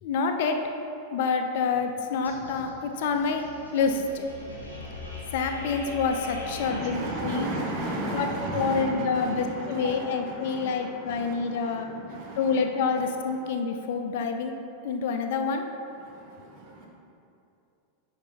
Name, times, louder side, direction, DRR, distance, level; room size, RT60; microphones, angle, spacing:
voice 1, 0.0-0.6 1.1-3.4 3.7-4.2 5.3-7.5 8.1-8.3 8.5-11.9 12.4-14.5 14.8-15.7, left 5 dB, 50° left, 5 dB, 0.5 m, -27 dB
sound 1, 2.2-7.9, left 2 dB, 85° right, 1.2 m, -42 dB
voice 2, 6.4-13.5 15.9-16.9, right 1 dB, 40° right, -2 dB, 1.4 m, -35 dB
9.7 x 3.4 x 4.2 m, 2.7 s
figure-of-eight pair, 90°, 0 cm